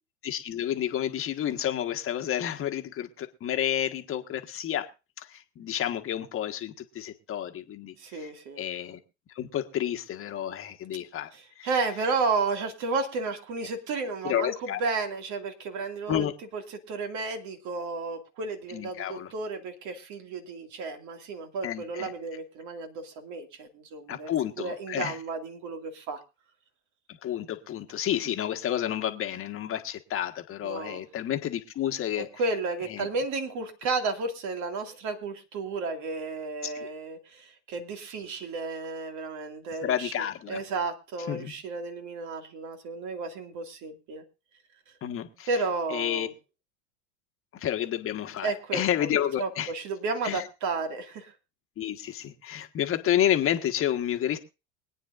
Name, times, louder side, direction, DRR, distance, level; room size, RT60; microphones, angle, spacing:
voice 1, 0.2-4.9 5.2-8.3 8.6-9.0 9.3-11.3 11.6-11.7 14.2-14.8 16.1-16.3 18.7-19.3 21.6-22.1 24.1-25.2 27.1-32.3 32.9-33.1 36.6-36.9 39.8-40.6 41.3-41.5 45.0-45.5 45.9-46.3 47.5-49.7 50.2-50.4 51.8-54.4, left 11 dB, 35° left, 7 dB, 1.5 m, -30 dB
voice 2, 8.0-8.6 11.3-16.3 16.5-16.6 16.9-24.3 24.6-26.2 30.6-31.0 32.4-44.2 45.5-46.3 48.4-49.1 49.4-51.3, right 4 dB, 50° right, 5 dB, 2.4 m, -32 dB
24.0 x 9.4 x 2.6 m, 0.29 s
hypercardioid pair, 100°, 39 cm